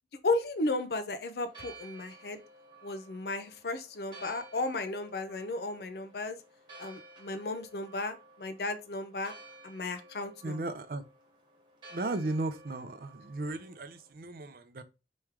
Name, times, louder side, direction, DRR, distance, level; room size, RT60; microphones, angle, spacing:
voice 1, 0.2-2.4 2.8-6.4 6.8-9.3 9.6-10.6, left 2 dB, 60° left, 0.6 m, -34 dB
Church bell, 1.4-14.1, right 2 dB, 25° right, 1.4 m, -54 dB
voice 2, 10.4-11.0 11.9-14.8, right 2 dB, 50° right, 0.5 m, -35 dB
3.5 x 3.1 x 4.5 m
head